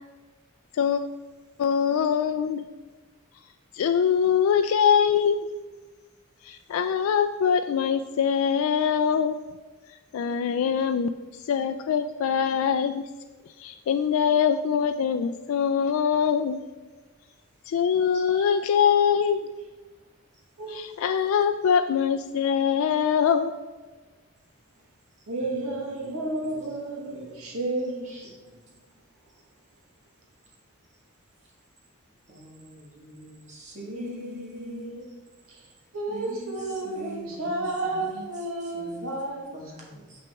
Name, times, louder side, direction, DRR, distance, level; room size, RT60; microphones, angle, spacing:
voice 1, 1.6-2.6 3.8-5.3 6.7-9.3 10.1-11.1 11.5-13.0 13.6-16.6 17.7-19.4 20.7-23.5, left 7 dB, 80° left, 8 dB, 0.3 m, -23 dB
voice 2, 18.1-18.5 25.4-26.8 27.0-27.5 28.0-28.6 32.3-34.9 36.1-39.1 39.5-40.2, right 1 dB, 35° right, -4 dB, 1.7 m, -44 dB
voice 3, 25.3-28.1 33.8-35.1 35.9-39.5, right 2 dB, 90° right, -1 dB, 1.3 m, -32 dB
7.1 x 5.9 x 3.5 m, 1.3 s
head